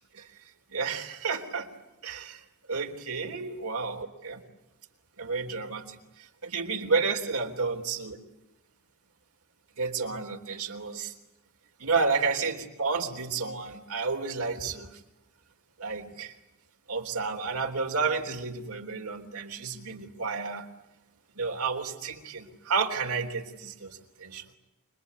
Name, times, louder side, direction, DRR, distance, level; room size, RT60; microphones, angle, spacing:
voice 1, 0.7-1.7 2.0-4.0 4.2-4.4 5.2-8.2 9.8-11.1 11.8-15.0 15.8-16.3 16.9-20.7 21.4-24.5, right 4 dB, 80° right, 4 dB, 3.6 m, -31 dB
26.5 x 23.0 x 9.7 m, 0.93 s
head